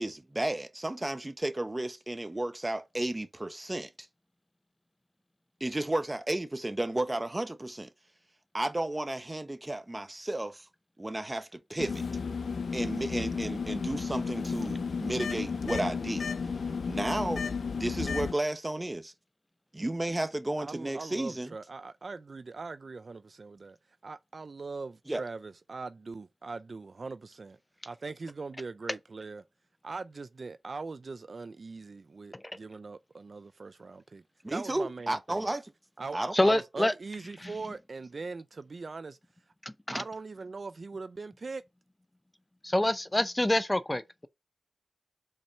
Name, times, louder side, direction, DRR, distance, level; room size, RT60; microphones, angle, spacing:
voice 1, 0.0-4.1 5.6-7.9 8.5-10.7 11.0-12.1 12.7-16.3 16.9-17.5 17.8-19.1 19.7-21.5 25.1-25.2 34.4-35.6 36.1-36.3, right 1 dB, 25° right, 1.1 m, -33 dB
sound 1, 11.8-18.3, left 5 dB, 80° left, 0.7 m, -33 dB
voice 2, 20.6-23.8 24.0-27.6 27.8-29.4 29.8-34.2 34.5-35.5 36.0-39.2 39.9-41.6, right 4 dB, 60° right, 0.4 m, -41 dB
voice 3, 36.3-36.9 37.4-37.5 39.6-40.0 42.6-44.3, left 1 dB, 20° left, 0.6 m, -27 dB
5.3 x 4.2 x 5.6 m
cardioid pair, 50°, 0 cm